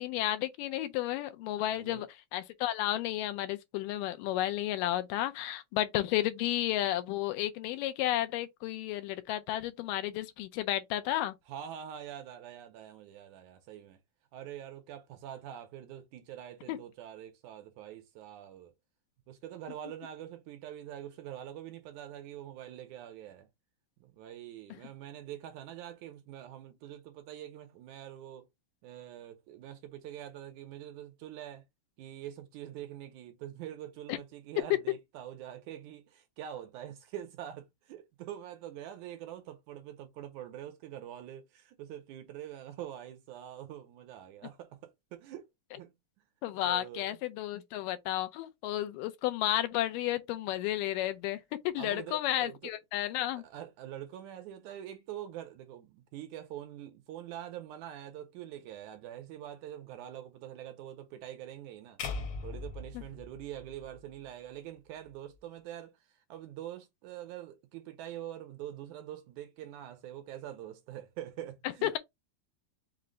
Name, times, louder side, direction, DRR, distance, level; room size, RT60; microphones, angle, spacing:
voice 1, 0.0-2.1 2.3-11.4 16.7-16.8 34.1-34.2 46.4-53.4 71.8-72.0, left 13 dB, 85° left, 2.2 m, -32 dB
voice 2, 11.5-14.0 14.3-18.7 19.3-23.5 24.0-28.5 28.8-31.6 32.0-45.5 45.7-45.9 46.6-47.2 51.8-52.7 53.4-62.0 62.4-72.0, right 11 dB, 80° right, 1.9 m, -45 dB
sound 1, 62.0-64.3, left 4 dB, 60° left, 1.5 m, -40 dB
5.6 x 2.0 x 3.7 m
omnidirectional pair, 3.8 m